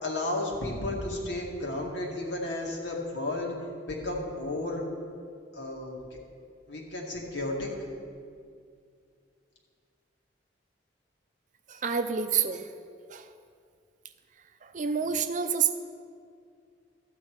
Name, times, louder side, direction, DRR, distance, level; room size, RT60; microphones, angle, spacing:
voice 1, 0.0-3.5 3.8-4.8 5.5-6.2 6.7-7.7, left 2 dB, 75° left, -2 dB, 2.1 m, -33 dB
voice 2, 11.7-12.6 13.1-13.2 14.7-15.8, right 7 dB, 45° right, 8 dB, 0.5 m, -28 dB
13.5 x 8.5 x 4.7 m, 2.3 s
head